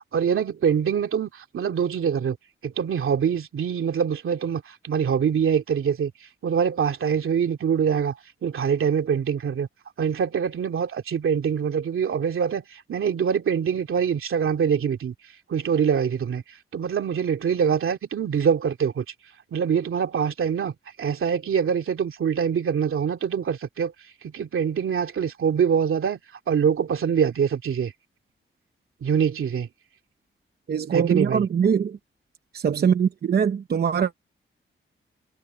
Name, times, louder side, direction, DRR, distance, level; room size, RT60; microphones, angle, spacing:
voice 1, 0.1-2.4 2.6-6.1 6.4-8.1 8.4-9.7 10.0-15.1 15.5-16.4 16.7-19.0 19.5-23.9 24.2-26.2 26.5-27.9 29.0-29.7 30.9-31.4, right 7 dB, 80° right, 2.6 m, -24 dB
voice 2, 30.7-32.0 32.5-34.2, right 7 dB, 50° right, 0.7 m, -22 dB
wide cardioid pair, 165°, 21 cm